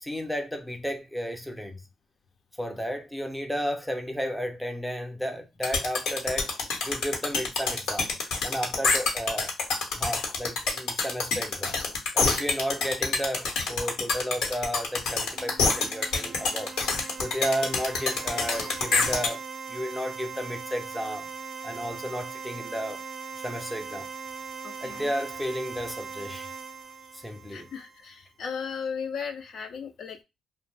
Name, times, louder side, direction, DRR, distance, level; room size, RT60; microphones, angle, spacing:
voice 1, 0.0-1.8 2.6-6.5 6.8-8.1 8.4-9.5 10.0-11.8 12.1-16.7 17.2-19.4 19.7-21.3 21.6-23.0 23.4-24.1 24.8-26.5 27.1-27.7, equal, ahead, 0.5 m, -33 dB
sound 1, 5.6-19.3, left 4 dB, 85° left, 0.9 m, -26 dB
sound 2, 15.3-28.1, right 5 dB, 50° right, 0.4 m, -40 dB
voice 2, 24.6-25.1 27.5-30.2, left 6 dB, 65° left, 0.4 m, -36 dB
2.4 x 2.0 x 3.2 m
cardioid pair, 90°, 0 cm